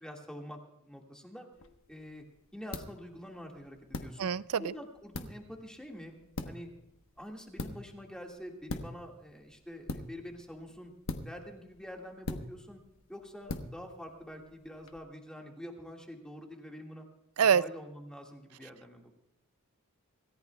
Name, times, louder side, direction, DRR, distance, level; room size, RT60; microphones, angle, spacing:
voice 1, 0.0-1.5 1.9-2.2 2.5-4.3 4.6-6.1 6.4-6.7 7.2-10.9 11.2-12.8 13.1-17.0 17.4-19.2, equal, 5° left, 1 dB, 1.8 m, -46 dB
sound 1, 1.5-15.0, left 2 dB, 65° left, 1.1 m, -44 dB
voice 2, 4.2-4.7 17.4-17.6, right 7 dB, 75° right, 17 dB, 0.5 m, -25 dB
26.0 x 14.5 x 2.3 m, 0.90 s
head